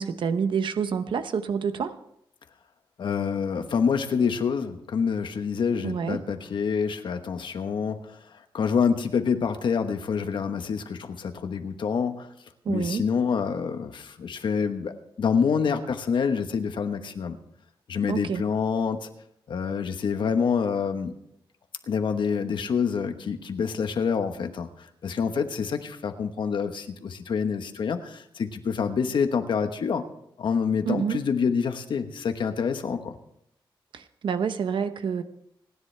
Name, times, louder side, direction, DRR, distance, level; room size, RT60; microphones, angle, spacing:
voice 1, 0.0-2.0 5.8-6.2 12.6-13.0 18.1-18.4 30.9-31.2 33.9-35.2, right 6 dB, 70° right, 10 dB, 0.9 m, -27 dB
voice 2, 3.0-8.2 8.5-12.3 12.7-17.4 17.9-19.1 19.5-21.1 21.9-30.0 30.4-33.1, left 6 dB, 65° left, 7 dB, 1.2 m, -27 dB
28.0 x 10.5 x 3.4 m, 0.77 s
wide cardioid pair, 155°, 9 cm